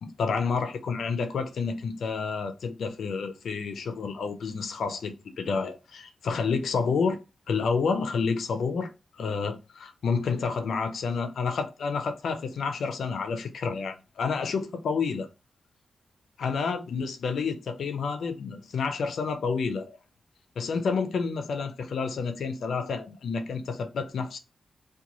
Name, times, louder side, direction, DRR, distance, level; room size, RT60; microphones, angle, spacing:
voice 1, 0.0-7.2 7.5-8.9 9.2-15.3 16.4-20.0 20.6-24.4, left 5 dB, 85° left, 0.5 m, -29 dB
2.9 x 2.2 x 3.8 m
wide cardioid pair, 110°, 0 cm